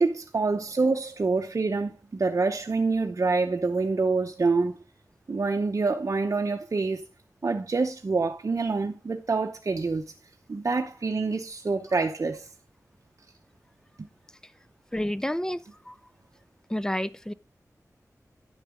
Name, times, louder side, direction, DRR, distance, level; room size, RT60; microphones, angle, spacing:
voice 1, 0.0-4.8 5.3-7.0 7.4-10.0 10.5-12.5 14.0-14.1, right 3 dB, 60° right, 0.7 m, -26 dB
voice 2, 14.9-15.9 16.7-17.3, left 1 dB, 10° left, 0.4 m, -30 dB
10.5 x 6.5 x 3.6 m
wide cardioid pair, 80°, 6 cm